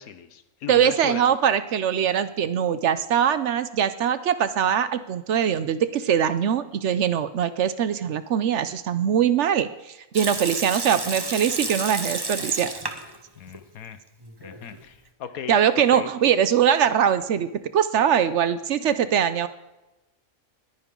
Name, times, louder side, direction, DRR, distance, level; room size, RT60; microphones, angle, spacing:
voice 1, 0.0-1.2 13.4-14.0 14.4-15.6 15.9-16.1, left 8 dB, 85° left, 12 dB, 1.4 m, -37 dB
voice 2, 0.7-12.7 15.5-19.5, right 8 dB, 65° right, 13 dB, 0.9 m, -22 dB
Water tap faucet / Sink (filling or washing) / Liquid, 10.1-13.2 13.5-13.6 14.2-14.8, right 2 dB, 20° right, 0.9 m, -31 dB
20.5 x 9.9 x 3.8 m, 0.97 s
omnidirectional pair, 1.5 m